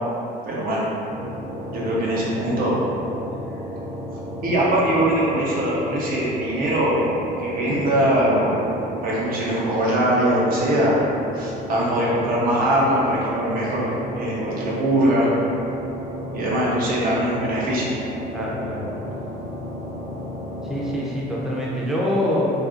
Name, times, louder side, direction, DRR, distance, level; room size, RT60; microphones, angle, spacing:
voice 1, 0.4-0.9 1.7-2.8 4.1-7.0 7.4-8.7 9.0-11.0 11.3-15.3 16.3-17.9, right 1 dB, 60° right, -6 dB, 0.7 m, -22 dB
sound 1, 1.1-21.0, equal, 25° right, 0.7 m, -33 dB
voice 2, 18.3-19.1 20.6-22.5, left 1 dB, ahead, -6 dB, 0.5 m, -25 dB
2.5 x 2.3 x 2.5 m, 2.7 s
cardioid pair, 110°, 17 cm